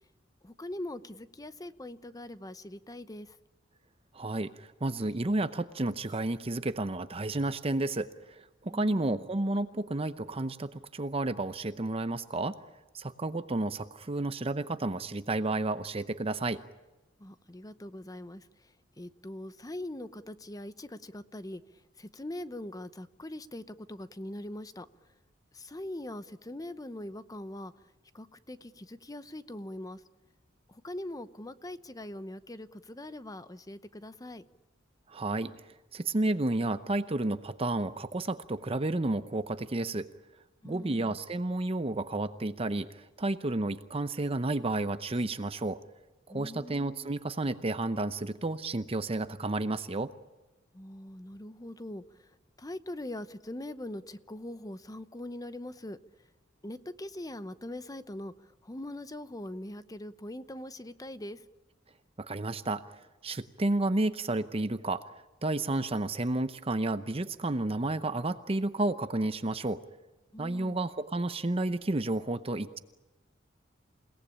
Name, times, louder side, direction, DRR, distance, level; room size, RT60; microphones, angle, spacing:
voice 1, 0.4-3.4 8.7-9.3 17.2-21.6 22.0-24.9 25.5-27.7 28.1-30.0 30.7-34.4 40.6-41.2 46.3-47.1 50.7-52.3 52.6-56.0 56.6-61.4 70.3-70.9, left 1 dB, 20° left, 13 dB, 0.8 m, -42 dB
voice 2, 4.1-12.6 12.9-16.6 35.1-40.1 40.6-45.8 46.3-50.1 62.2-62.8 63.2-65.0 65.4-69.8 70.4-72.8, right 2 dB, 30° right, 11 dB, 0.8 m, -31 dB
29.0 x 18.5 x 8.7 m, 1.1 s
head